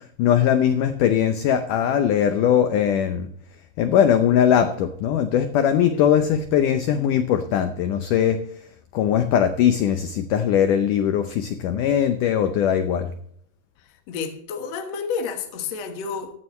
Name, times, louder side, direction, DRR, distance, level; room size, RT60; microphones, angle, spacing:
voice 1, 0.2-3.3 3.8-8.4 8.9-13.1, left 9 dB, 90° left, 8 dB, 1.8 m, -20 dB
voice 2, 14.1-16.3, left 5 dB, 60° left, 4 dB, 1.9 m, -30 dB
15.5 x 13.0 x 3.1 m, 0.67 s
omnidirectional pair, 4.8 m